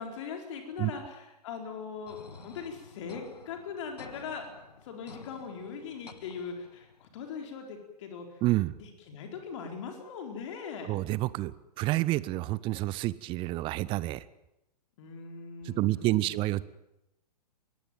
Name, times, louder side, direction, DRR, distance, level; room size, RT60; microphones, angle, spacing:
voice 1, 0.0-4.5 4.8-8.4 8.8-11.0 15.0-16.5, left 5 dB, 45° left, 3 dB, 4.5 m, -40 dB
sound 1, 2.1-7.1, left 5 dB, 75° left, 1.5 m, -51 dB
voice 2, 8.4-8.7 10.8-14.2 15.6-16.7, right 18 dB, 25° right, 20 dB, 0.7 m, -29 dB
22.5 x 19.0 x 9.1 m, 0.90 s
figure-of-eight pair, 110°, 21 cm